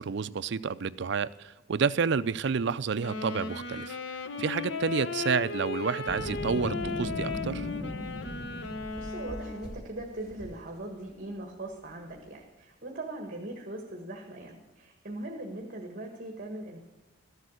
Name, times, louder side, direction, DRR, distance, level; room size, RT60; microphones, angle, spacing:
voice 1, 0.0-7.7, right 5 dB, 60° right, 0.5 m, -30 dB
Wind instrument woodwind instrument, 3.0-9.8, left 4 dB, 65° left, 0.9 m, -36 dB
Boom, 6.1-9.1, equal, 30° left, 1.3 m, -37 dB
sound 1, 6.5-12.4, right 1 dB, 50° left, 4.3 m, -49 dB
voice 2, 8.9-16.8, right 1 dB, 45° right, 1.6 m, -40 dB
13.5 x 8.1 x 6.4 m
head